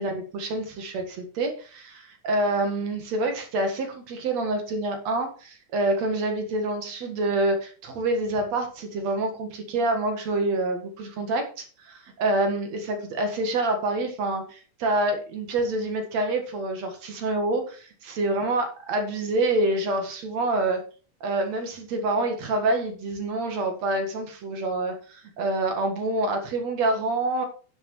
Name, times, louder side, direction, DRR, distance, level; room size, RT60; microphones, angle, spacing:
voice 1, 0.0-17.8 18.1-20.8 21.2-27.5, right 2 dB, 60° right, 5 dB, 2.8 m, -27 dB
11.0 x 6.8 x 4.6 m, 0.38 s
omnidirectional pair, 3.7 m